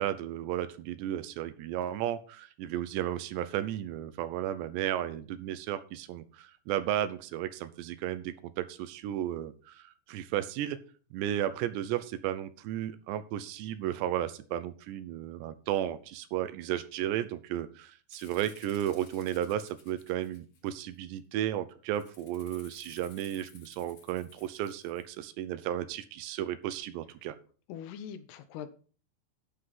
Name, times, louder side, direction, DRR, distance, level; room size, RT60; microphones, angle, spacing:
voice 1, 0.0-10.8 11.1-27.4, right 11 dB, 80° right, 13 dB, 2.9 m, -34 dB
Rattle (instrument), 18.1-21.0 21.9-25.2, left 6 dB, 50° left, 2.3 m, -57 dB
voice 2, 27.7-28.7, left 8 dB, 75° left, 10 dB, 2.6 m, -42 dB
11.0 x 5.7 x 5.9 m, 0.40 s
omnidirectional pair, 5.0 m